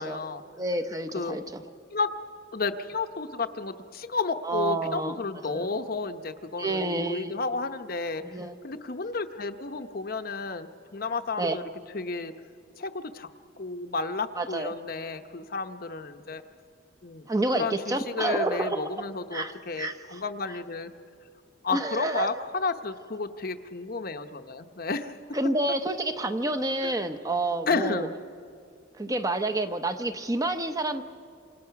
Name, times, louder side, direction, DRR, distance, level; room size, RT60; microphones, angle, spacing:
voice 1, 0.0-0.4 1.1-1.4 1.9-2.1 2.5-8.4 8.6-11.6 11.9-12.3 12.8-13.3 13.6-16.4 17.0-20.9 21.6-25.4 26.8-26.9 27.7-28.2, left 3 dB, 50° left, 8 dB, 0.9 m, -32 dB
voice 2, 0.6-1.6 4.4-5.2 5.5-5.7 6.6-7.3 8.2-8.6 11.4-11.6 14.4-14.7 17.3-20.2 21.7-22.4 25.3-28.1 29.0-31.0, right 2 dB, 20° right, 7 dB, 0.8 m, -29 dB
28.0 x 26.0 x 5.8 m, 2.3 s
head